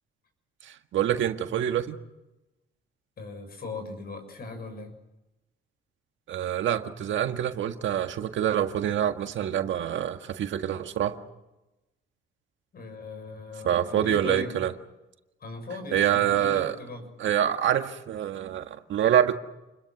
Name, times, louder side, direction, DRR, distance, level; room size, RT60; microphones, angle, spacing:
voice 1, 0.6-2.0 6.3-11.2 13.6-14.7 15.9-16.8 17.2-19.3, right 10 dB, 70° right, 7 dB, 1.7 m, -26 dB
voice 2, 3.2-4.9 12.7-14.6 15.4-17.1, left 3 dB, 50° left, 7 dB, 7.0 m, -39 dB
28.5 x 22.0 x 6.1 m, 0.98 s
cardioid pair, 90°, 20 cm